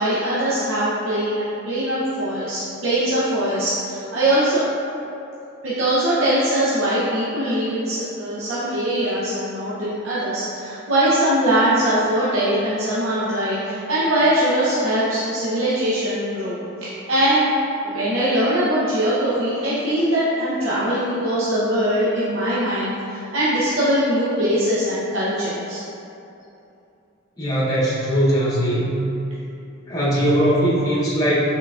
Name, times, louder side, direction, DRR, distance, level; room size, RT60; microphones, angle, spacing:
voice 1, 0.0-4.6 5.6-17.5 17.8-25.8, right 1 dB, 70° right, -10 dB, 0.7 m, -21 dB
voice 2, 27.4-28.9 29.9-31.4, equal, 15° left, -9 dB, 0.8 m, -20 dB
5.4 x 3.8 x 2.3 m, 2.8 s
head